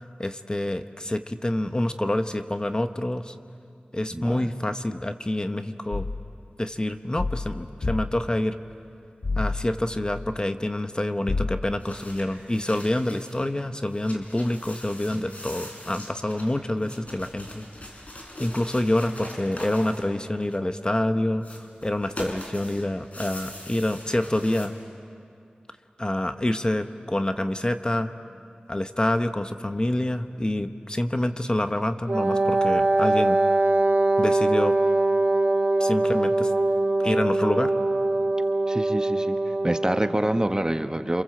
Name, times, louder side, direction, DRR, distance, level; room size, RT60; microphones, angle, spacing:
voice 1, 0.2-3.3 3.9-6.1 6.6-8.6 9.3-24.7 26.0-28.1 28.7-33.4 34.2-34.8 35.8-36.5 37.0-37.7, left 1 dB, 25° left, 8 dB, 1.1 m, -27 dB
voice 2, 4.1-4.5 15.1-15.3 38.7-39.4 39.6-41.2, right 1 dB, 25° right, 8 dB, 1.1 m, -26 dB
sound 1, 5.9-6.3 7.2-8.2 9.2-10.4 11.3-11.7, left 3 dB, 70° left, 0.8 m, -29 dB
sound 2, 11.8-13.5 13.8-20.8 21.4-24.7, left 1 dB, 50° left, 4.5 m, -42 dB
Wind instrument woodwind instrument, 32.1-40.2, right 2 dB, 55° right, 3.1 m, -22 dB
28.5 x 26.5 x 7.8 m, 2.4 s
wide cardioid pair, 55°, 3 cm